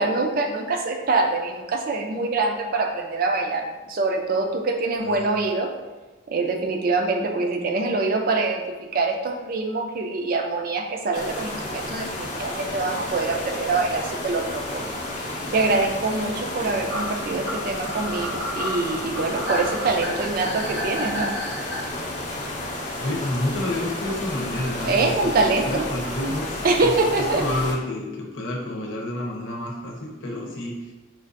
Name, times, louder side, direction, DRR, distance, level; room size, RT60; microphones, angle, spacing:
voice 1, 0.0-5.7 6.3-21.3 24.8-25.7 26.6-27.4, right 3 dB, 50° right, 3 dB, 0.4 m, -24 dB
sound 1, 11.1-27.7, left 1 dB, 45° left, 0.5 m, -32 dB
sound 2, 16.1-16.2 16.9-21.8, equal, 80° right, 1.1 m, -31 dB
voice 2, 23.0-26.5 26.8-26.9 27.3-30.9, left 1 dB, 90° left, -2 dB, 0.8 m, -29 dB
4.4 x 2.4 x 2.5 m, 1.2 s
head